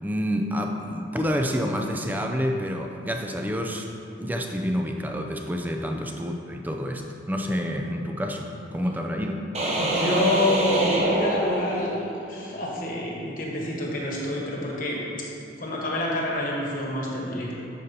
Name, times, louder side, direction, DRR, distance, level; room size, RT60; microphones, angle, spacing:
voice 1, 0.0-3.9 4.2-9.4, equal, 10° right, 3 dB, 0.4 m, -28 dB
sound 1, 9.5-12.2, right 1 dB, 35° right, 0.9 m, -25 dB
voice 2, 9.8-15.0 15.6-17.6, left 1 dB, 45° left, -3 dB, 1.2 m, -27 dB
9.1 x 6.7 x 2.8 m, 2.7 s
head